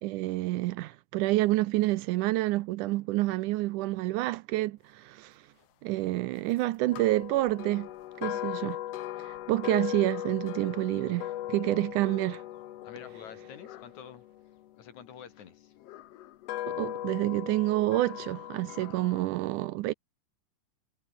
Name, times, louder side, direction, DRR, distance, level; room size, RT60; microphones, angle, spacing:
voice 1, 0.0-5.4 5.8-7.9 8.2-8.8 9.2-12.4 16.7-19.9, right 18 dB, 80° right, 1.8 m, -28 dB
sound 1, 6.9-15.1 15.8-19.3, left 13 dB, 80° left, 1.4 m, -38 dB
voice 2, 12.8-14.2 14.7-15.7, left 8 dB, 55° left, 3.7 m, -48 dB
omnidirectional pair, 4.1 m